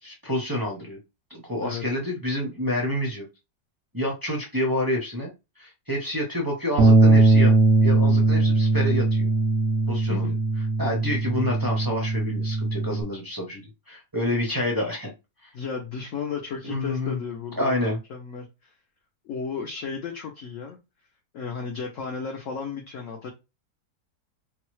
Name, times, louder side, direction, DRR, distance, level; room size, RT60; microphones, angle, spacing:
voice 1, 0.0-1.0 1.3-3.3 3.9-7.5 7.8-9.3 9.9-10.3 10.8-15.1 15.4-15.5 16.6-17.2 17.6-18.0, left 1 dB, 30° right, -1 dB, 0.4 m, -28 dB
Bass guitar, 6.8-13.0, right 3 dB, 60° right, 0.8 m, -20 dB
voice 2, 15.5-17.8 18.1-18.7 19.2-20.8 21.3-23.3, left 5 dB, 65° left, 1 dB, 0.8 m, -34 dB
3.9 x 2.3 x 3.1 m, 0.25 s
omnidirectional pair, 1.8 m